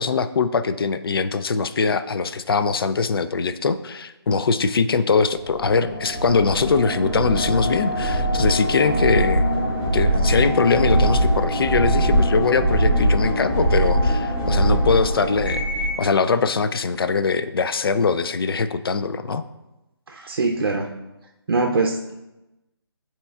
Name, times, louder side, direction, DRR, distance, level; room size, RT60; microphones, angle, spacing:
voice 1, 0.0-9.5 9.9-15.6 16.0-19.4, left 5 dB, 60° left, 12 dB, 0.4 m, -22 dB
sound 1, 5.4-16.0, right 1 dB, 5° left, 1.7 m, -21 dB
voice 2, 20.1-20.9 21.5-22.1, right 3 dB, 60° right, 0 dB, 0.6 m, -22 dB
9.3 x 4.3 x 2.3 m, 0.99 s
hypercardioid pair, 170°, 14 cm